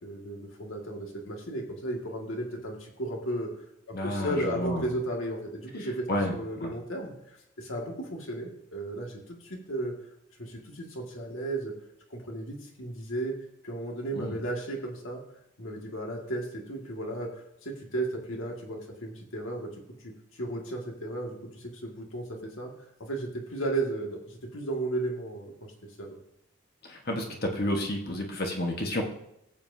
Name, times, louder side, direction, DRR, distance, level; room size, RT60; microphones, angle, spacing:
voice 1, 0.0-3.5 3.9-9.9 10.4-11.7 12.1-13.4 13.6-15.2 15.6-19.7 20.0-22.7 23.0-25.7 26.0-26.2, right 1 dB, 75° left, 1 dB, 2.0 m, -34 dB
voice 2, 3.9-4.9 6.1-6.7 14.1-14.4 26.8-29.0, left 1 dB, 50° left, 1 dB, 1.4 m, -31 dB
17.5 x 7.7 x 2.8 m, 0.80 s
head